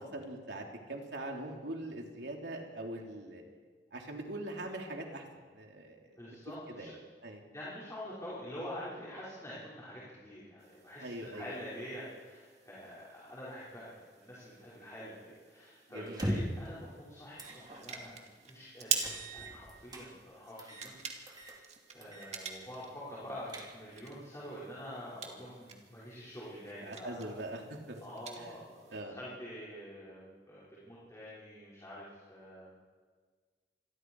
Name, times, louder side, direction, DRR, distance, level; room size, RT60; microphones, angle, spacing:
voice 1, 0.0-3.4 3.9-5.2 5.5-6.2 6.8-6.9 7.2-7.4 11.0-11.6 15.9-16.2 26.8-28.0 28.4-28.6 28.9-29.2, right 1 dB, 75° right, 1 dB, 3.3 m, -42 dB
voice 2, 6.2-6.9 7.5-21.6 21.9-27.4 28.0-32.7, equal, 20° left, -9 dB, 5.6 m, -46 dB
sound 1, 10.6-29.0, right 6 dB, 40° right, 2.4 m, -45 dB
sound 2, 16.1-16.7 17.4-17.6 18.0-18.1 19.0-20.1 20.6-20.9 21.3-21.6 22.0-22.3 22.6-22.7 23.2-24.0, equal, 25° right, 3.2 m, -39 dB
27.0 x 21.0 x 4.8 m, 1.5 s
head